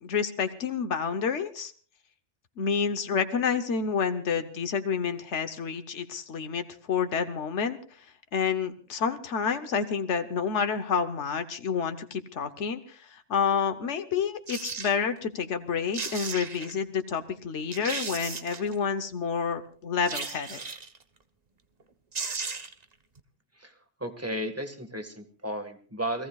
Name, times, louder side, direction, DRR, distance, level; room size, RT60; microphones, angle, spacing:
voice 1, 0.0-1.7 2.6-7.8 8.3-20.6, left 6 dB, 90° left, 8 dB, 1.3 m, -29 dB
sound 1, 14.5-14.9 15.7-15.8 15.9-16.7 17.3-17.4 17.7-18.7 20.1-21.0 21.8-21.9 22.1-22.8 23.2-23.3, right 4 dB, 40° right, 1.1 m, -35 dB
voice 2, 23.5-26.3, right 1 dB, 15° right, 6 dB, 1.6 m, -34 dB
29.0 x 19.0 x 2.4 m, 0.43 s
omnidirectional pair, 1.2 m